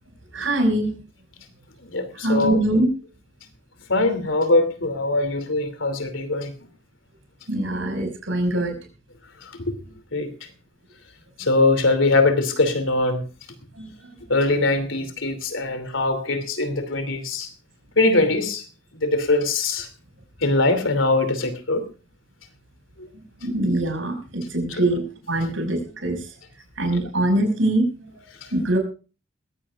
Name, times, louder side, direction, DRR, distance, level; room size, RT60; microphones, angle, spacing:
voice 1, 0.3-1.0 2.1-2.9 7.5-8.7 13.7-14.2 23.1-26.3 26.8-28.8, right 1 dB, 80° right, 5 dB, 5.8 m, -24 dB
voice 2, 1.9-2.6 3.9-6.5 10.1-10.3 11.4-13.2 14.3-17.5 18.0-18.6 19.0-19.9 20.4-21.8 23.0-23.1, left 2 dB, 85° left, 10 dB, 2.8 m, -21 dB
21.0 x 16.0 x 2.5 m, 0.34 s
head